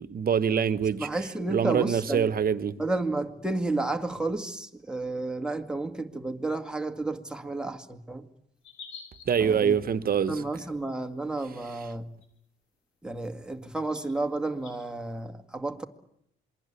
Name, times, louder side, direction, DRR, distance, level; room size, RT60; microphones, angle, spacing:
voice 1, 0.0-1.1 1.5-2.7 9.3-10.4, right 7 dB, 50° right, 1.3 m, -25 dB
voice 2, 1.0-2.4 2.8-8.3 9.4-9.8 10.3-12.0 13.0-15.8, right 2 dB, 5° right, 2.1 m, -31 dB
sound 1, 8.6-9.4 10.5-10.6 11.8-11.9 12.1-12.3 13.2-13.3 13.9-14.0 14.6-14.7, left 6 dB, 85° left, 6.5 m, -46 dB
27.0 x 22.0 x 8.4 m
cardioid pair, 90°, 20 cm